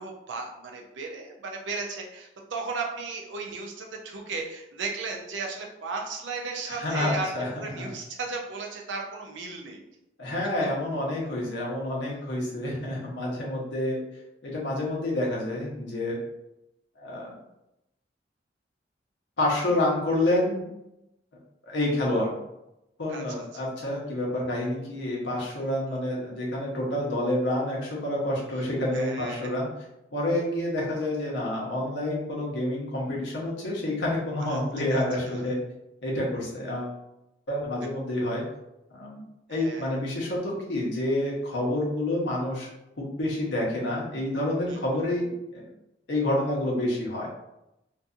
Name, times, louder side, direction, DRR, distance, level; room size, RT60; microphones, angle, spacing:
voice 1, 0.0-7.3 7.6-9.8 23.1-23.2 28.9-29.5 34.5-34.6 34.9-35.0 35.3-35.5 39.5-39.9 44.7-44.8, right 4 dB, 80° right, 1 dB, 0.5 m, -35 dB
voice 2, 6.7-7.5 7.8-7.9 10.2-14.0 14.4-16.2 17.0-17.3 19.4-20.7 21.6-22.3 23.0-29.7 30.1-35.6 36.0-36.9 37.5-38.4 38.9-39.2 39.5-42.7 43.0-45.6 46.1-47.3, left 1 dB, 80° left, -4 dB, 0.9 m, -28 dB
2.6 x 2.6 x 2.4 m, 0.88 s
head